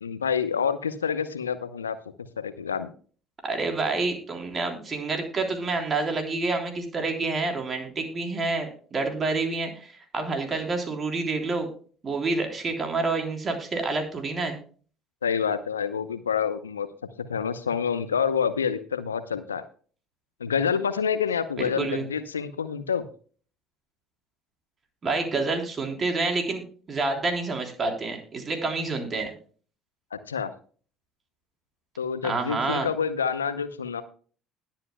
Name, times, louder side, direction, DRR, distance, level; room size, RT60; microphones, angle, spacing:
voice 1, 0.0-2.0 2.4-2.9 15.2-16.9 17.2-19.7 20.4-23.1 30.1-30.5 32.0-34.0, left 7 dB, 85° left, 14 dB, 0.6 m, -27 dB
voice 2, 3.4-11.7 12.0-14.6 21.6-22.1 25.0-29.3 32.2-32.9, right 3 dB, 35° right, 4 dB, 3.4 m, -28 dB
20.5 x 7.4 x 2.2 m, 0.41 s
figure-of-eight pair, 55°, 0 cm